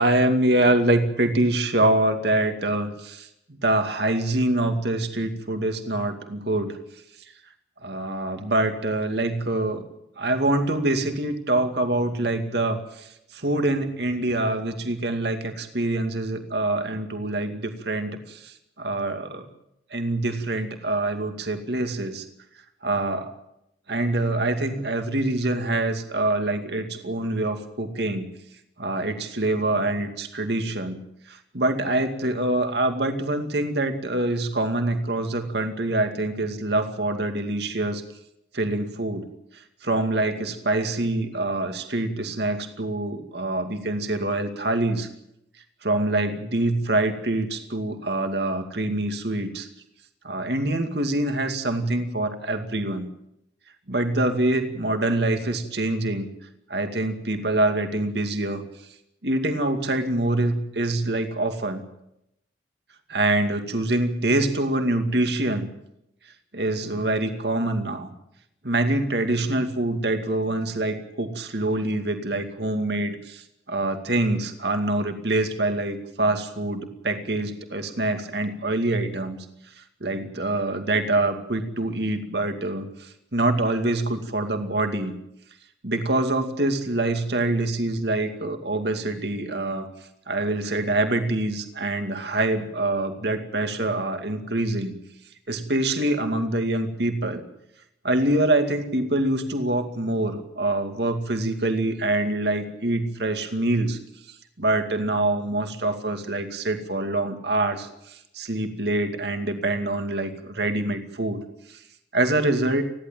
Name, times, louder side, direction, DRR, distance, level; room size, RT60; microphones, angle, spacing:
voice 1, 0.0-6.8 7.8-9.8 10.2-19.5 19.9-22.2 22.8-23.3 23.9-28.3 28.8-31.0 31.3-38.0 38.5-39.3 39.8-45.1 45.8-49.7 50.2-53.1 53.9-56.3 56.7-58.6 59.2-61.8 63.1-65.7 66.5-68.1 68.6-79.4 79.8-85.1 85.8-89.9 90.3-94.9 95.5-97.4 98.0-104.0 104.3-111.4 111.7-111.8 112.1-112.8, right 2 dB, 65° right, 6 dB, 2.4 m, -25 dB
29.5 x 11.5 x 9.0 m, 0.81 s
head